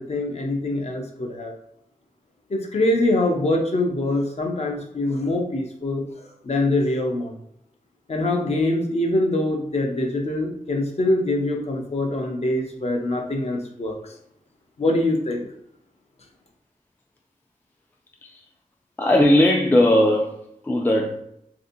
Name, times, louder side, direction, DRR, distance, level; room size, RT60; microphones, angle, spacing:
voice 1, 0.0-1.5 2.5-7.4 8.1-14.1 14.8-15.5, left 1 dB, 45° left, 0.6 m, -24 dB
voice 2, 19.0-21.2, left 1 dB, 15° left, 0.3 m, -18 dB
3.4 x 2.6 x 2.6 m
wide cardioid pair, 115°, 15 cm